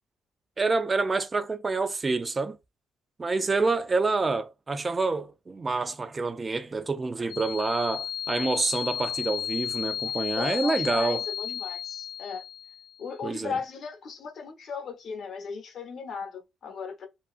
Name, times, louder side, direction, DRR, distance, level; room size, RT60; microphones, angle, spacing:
voice 1, 0.6-2.6 3.2-11.2 13.2-13.5, right 3 dB, 30° right, 0.3 m, -27 dB
sound 1, 7.3-13.0, left 10 dB, 85° left, 0.3 m, -33 dB
voice 2, 10.4-12.4 13.0-17.1, left 5 dB, 60° left, 0.8 m, -37 dB
2.6 x 2.3 x 2.4 m
cardioid pair, 90°, 0 cm